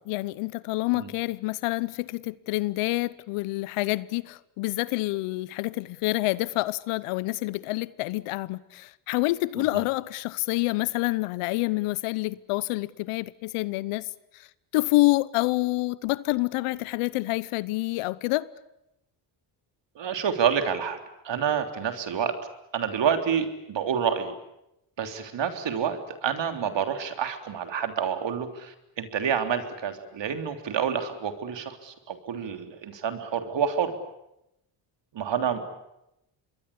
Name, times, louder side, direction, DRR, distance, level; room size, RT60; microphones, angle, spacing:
voice 1, 0.0-14.1 14.3-14.5 14.7-18.5, left 20 dB, 85° left, 1.0 m, -27 dB
voice 2, 19.9-21.0 21.2-22.3 22.7-24.3 25.0-33.9 35.1-35.8, right 7 dB, 60° right, 3.5 m, -28 dB
26.5 x 22.0 x 8.6 m
supercardioid pair, 70°, 50 cm